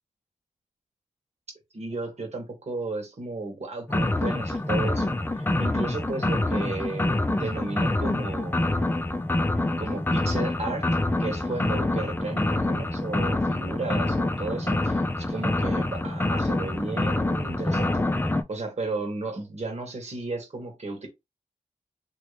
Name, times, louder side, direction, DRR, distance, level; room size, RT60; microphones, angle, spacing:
voice 1, 1.7-8.6 9.8-10.9 11.2-21.1, right 3 dB, 55° right, 1.3 m, -34 dB
sound 1, 3.9-18.4, left 2 dB, 15° left, 0.5 m, -26 dB
3.1 x 2.6 x 3.2 m
cardioid pair, 55°, 13 cm